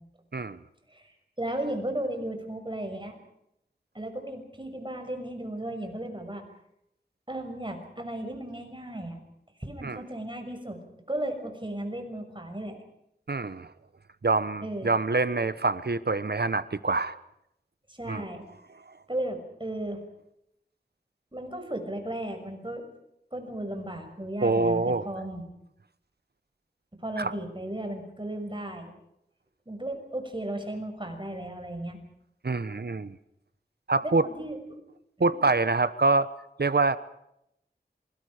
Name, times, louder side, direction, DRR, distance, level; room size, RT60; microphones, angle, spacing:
voice 1, 0.9-3.2 3.9-6.4 7.3-9.2 9.6-10.8 11.1-12.8 14.6-14.9 17.9-18.4 19.1-20.0 21.3-22.8 23.3-25.4 27.0-28.9 29.7-32.0 34.0-34.8 35.3-35.4, right 1 dB, 25° right, 5 dB, 6.2 m, -35 dB
voice 2, 13.3-13.7 14.2-17.1 18.1-18.2 24.4-25.1 27.2-27.3 32.4-33.2 33.9-34.2 35.2-36.3 36.6-37.0, right 3 dB, 65° right, 14 dB, 1.0 m, -25 dB
27.5 x 25.0 x 5.0 m, 0.78 s
wide cardioid pair, 55°, 18 cm